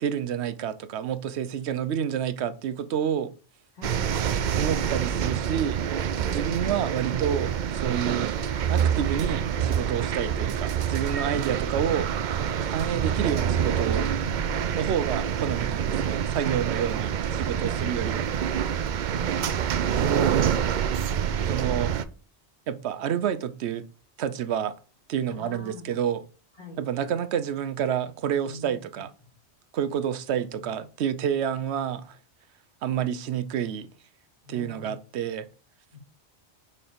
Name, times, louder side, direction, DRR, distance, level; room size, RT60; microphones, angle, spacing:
voice 1, 0.0-3.3 4.6-5.8 6.3-8.3 8.7-12.1 12.7-14.1 14.8-18.2 20.0-20.4 21.5-21.9 22.7-23.9 24.2-24.8 25.1-26.2 26.8-29.1 29.7-32.2 32.8-33.9 34.5-35.5, right 8 dB, 75° right, 0.9 m, -29 dB
voice 2, 3.7-4.1 6.2-6.4 10.2-10.3 14.2-14.7 17.0-17.2 17.8-18.3 19.0-19.6 25.2-26.0 26.6-26.9 28.4-29.0 34.4-34.9 35.9-36.0, left 3 dB, 35° left, 2.3 m, -44 dB
sound 1, 3.8-22.0, right 8 dB, 55° right, 0.5 m, -26 dB
6.4 x 4.4 x 5.1 m
omnidirectional pair, 1.2 m